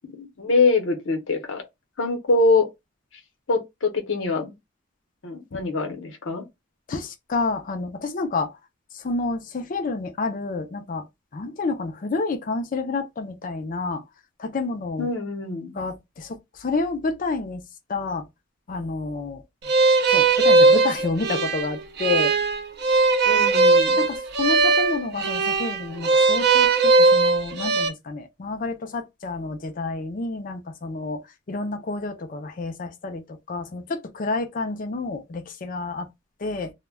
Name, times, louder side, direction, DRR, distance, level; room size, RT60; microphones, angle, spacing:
voice 1, 0.1-1.6 2.0-2.7 3.5-4.5 5.2-6.4 15.0-15.7 23.3-24.0, left 3 dB, 75° left, 0.7 m, -24 dB
voice 2, 6.9-8.5 8.9-11.1 11.3-14.0 14.4-15.1 15.7-17.6 17.9-18.2 18.7-19.4 20.1-22.3 24.0-31.2 31.5-36.1 36.4-36.7, left 3 dB, 45° left, 0.4 m, -29 dB
sound 1, 19.7-27.9, right 3 dB, 55° right, 0.5 m, -19 dB
2.2 x 2.1 x 3.3 m
head